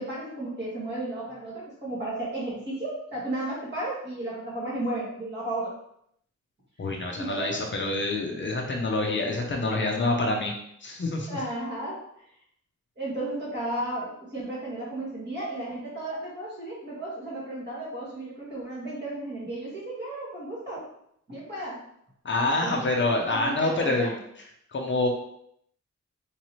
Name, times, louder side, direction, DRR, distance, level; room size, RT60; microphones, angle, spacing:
voice 1, 0.0-5.7 7.2-7.6 11.3-12.0 13.0-20.9 21.3-21.8 22.6-22.9 23.3-24.2, right 1 dB, 35° right, -7 dB, 1.7 m, -34 dB
voice 2, 6.8-10.5 10.8-11.4 22.2-24.1 24.7-25.1, left 2 dB, 40° left, 0 dB, 0.5 m, -26 dB
4.8 x 2.9 x 3.0 m, 0.73 s
wide cardioid pair, 160°, 30 cm